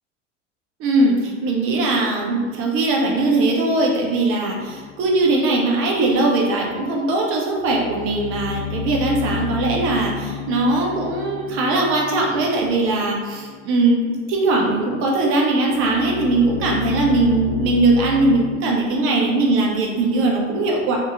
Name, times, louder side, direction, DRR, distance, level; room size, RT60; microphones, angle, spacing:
voice 1, 0.8-14.0 14.3-21.0, right 2 dB, 35° right, -1 dB, 0.7 m, -20 dB
sound 1, 4.5-6.4 6.8-7.0 7.3-15.1 15.4-18.5, left 7 dB, 30° left, 0.3 m, -32 dB
2.8 x 2.7 x 2.3 m, 1.5 s
figure-of-eight pair, 75°, 37 cm